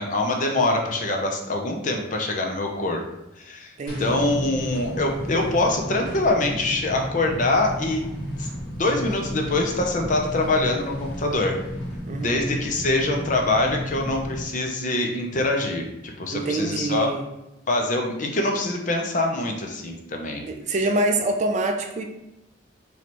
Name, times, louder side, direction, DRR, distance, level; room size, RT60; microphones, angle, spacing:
voice 1, 0.0-3.0 3.4-3.7 4.0-8.0 8.4-8.5 8.8-11.6 12.2-17.1 17.7-20.4, left 2 dB, 40° left, 2 dB, 0.6 m, -24 dB
voice 2, 3.8-4.2 12.1-12.5 16.3-17.2 20.4-22.0, right 2 dB, 40° right, 4 dB, 0.4 m, -25 dB
sound 1, 3.9-14.4, equal, 80° left, 1.4 m, -33 dB
4.2 x 3.2 x 3.0 m, 0.91 s
head